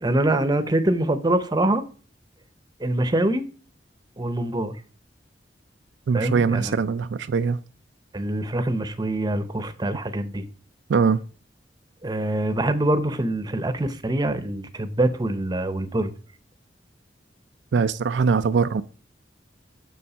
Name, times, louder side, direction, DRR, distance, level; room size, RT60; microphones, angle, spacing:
voice 1, 0.0-1.8 2.8-3.5 4.2-4.7 6.1-6.7 8.1-10.4 12.0-16.1, right 1 dB, 25° right, 0.8 m, -24 dB
voice 2, 6.1-7.6 10.9-11.2 17.7-18.8, right 5 dB, 75° right, 0.4 m, -21 dB
7.0 x 6.4 x 5.0 m
head